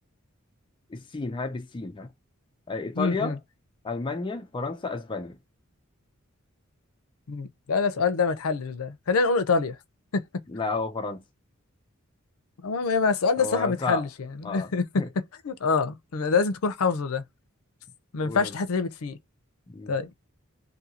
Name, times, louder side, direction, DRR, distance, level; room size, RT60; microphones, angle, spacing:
voice 1, 0.9-2.1 2.7-3.4 3.8-5.4 10.5-11.2 13.4-14.1 14.4-15.1 18.2-18.6 19.7-19.9, left 3 dB, 20° left, 0.4 m, -32 dB
voice 2, 3.0-3.4 7.3-9.8 10.1-10.4 12.6-14.1 14.4-17.2 18.1-19.2 19.9-20.1, left 4 dB, 80° left, 0.5 m, -26 dB
2.7 x 2.6 x 2.8 m
head